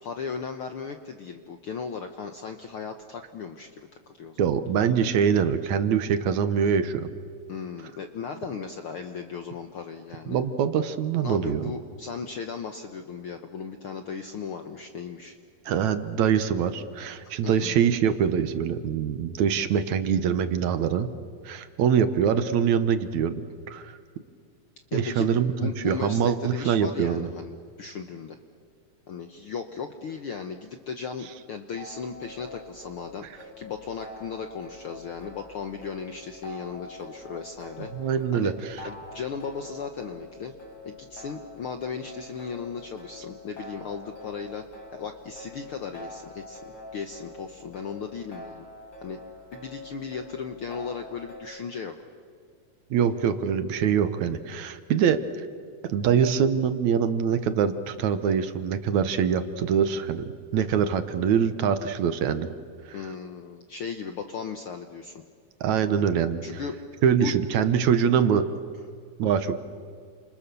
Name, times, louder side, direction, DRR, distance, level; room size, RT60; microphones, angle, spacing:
voice 1, 0.0-3.9 4.1-4.5 7.5-10.4 11.2-15.4 17.2-17.7 24.9-28.4 29.1-37.9 38.3-40.5 40.8-44.6 44.9-46.6 46.9-48.7 49.0-49.2 49.5-52.0 62.9-65.2 66.4-66.8 67.1-67.3, left 6 dB, 65° left, 7 dB, 1.3 m, -36 dB
voice 2, 4.4-7.1 10.3-11.7 15.7-21.1 21.5-23.9 24.9-27.3 37.9-38.8 52.9-55.2 55.9-60.3 60.5-62.5 62.9-63.0 65.6-66.4 67.0-68.5 69.2-69.5, right 7 dB, 70° right, 10 dB, 2.3 m, -24 dB
sound 1, 31.8-51.4, left 1 dB, 30° left, 6.0 m, -45 dB
29.0 x 27.5 x 6.9 m, 2.1 s
omnidirectional pair, 3.7 m